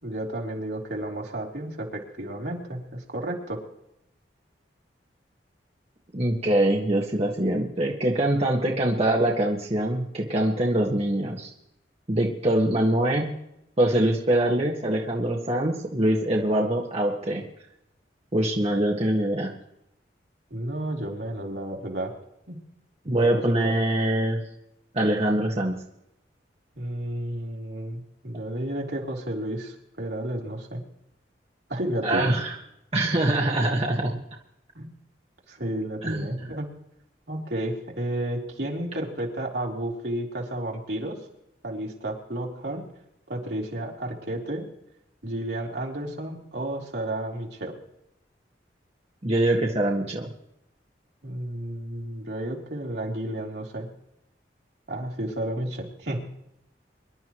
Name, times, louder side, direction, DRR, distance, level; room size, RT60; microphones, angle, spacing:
voice 1, 0.0-3.6 20.5-22.1 22.5-22.6 23.2-23.7 26.7-30.8 31.7-32.4 34.7-34.9 35.5-36.7 37.3-41.2 41.6-42.8 43.3-44.6 45.2-47.7 51.2-53.9 54.9-56.2, right 1 dB, 70° right, -2 dB, 3.3 m, -32 dB
voice 2, 6.1-11.5 12.1-13.3 13.8-17.4 18.3-19.5 23.0-24.4 24.9-25.7 32.0-32.5 32.9-34.1 36.0-36.3 49.2-50.3, right 1 dB, 35° right, -1 dB, 1.6 m, -24 dB
25.0 x 12.0 x 3.1 m, 0.81 s
head